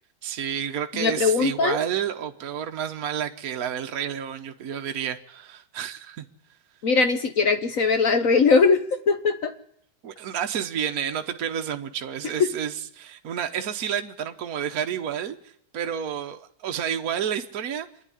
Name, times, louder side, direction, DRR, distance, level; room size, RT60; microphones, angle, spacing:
voice 1, 0.2-6.2 10.0-15.4 15.7-17.9, right 9 dB, 55° right, 5 dB, 1.2 m, -30 dB
voice 2, 0.9-1.8 6.8-9.5, left 4 dB, 55° left, 8 dB, 1.0 m, -20 dB
26.0 x 10.0 x 9.9 m, 0.72 s
omnidirectional pair, 2.3 m